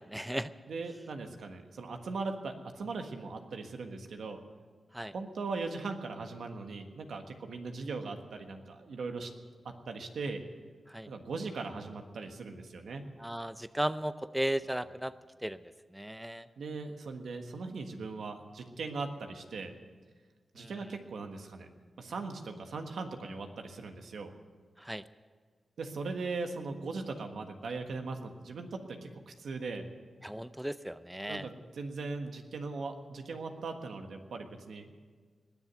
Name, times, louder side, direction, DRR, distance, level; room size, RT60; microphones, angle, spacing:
voice 1, 0.0-0.5 4.9-5.1 10.9-11.1 13.2-15.1 15.4-15.6 15.9-16.5 20.6-20.9 24.8-25.0 30.2-31.5, right 1 dB, 5° right, 14 dB, 0.5 m, -36 dB
voice 2, 0.7-4.4 5.1-9.3 9.6-10.4 11.1-13.0 16.6-19.7 20.5-21.7 22.0-24.3 25.8-29.9 31.3-35.1, right 3 dB, 85° right, 5 dB, 1.5 m, -39 dB
20.0 x 7.2 x 9.3 m, 1.5 s
cardioid pair, 60°, 0 cm